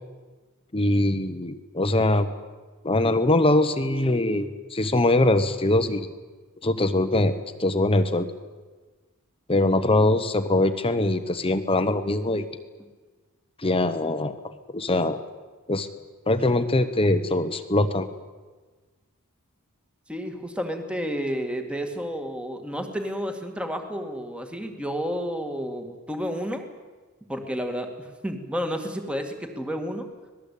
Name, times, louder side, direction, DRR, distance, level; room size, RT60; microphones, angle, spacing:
voice 1, 0.7-2.3 2.8-6.1 6.6-8.3 9.5-12.5 13.6-14.3 14.7-15.2 15.7-15.9 16.3-18.1, left 2 dB, 25° left, 9 dB, 1.2 m, -22 dB
voice 2, 20.1-26.7 27.3-30.1, equal, 5° right, 5 dB, 2.2 m, -31 dB
25.5 x 19.0 x 8.6 m, 1.3 s
head